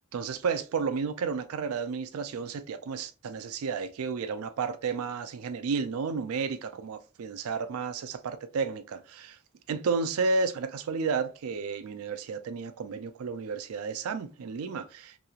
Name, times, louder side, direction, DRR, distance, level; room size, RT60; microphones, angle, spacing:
voice 1, 0.1-9.4 9.7-15.2, right 5 dB, 80° right, 0.4 m, -32 dB
2.9 x 2.7 x 2.3 m
head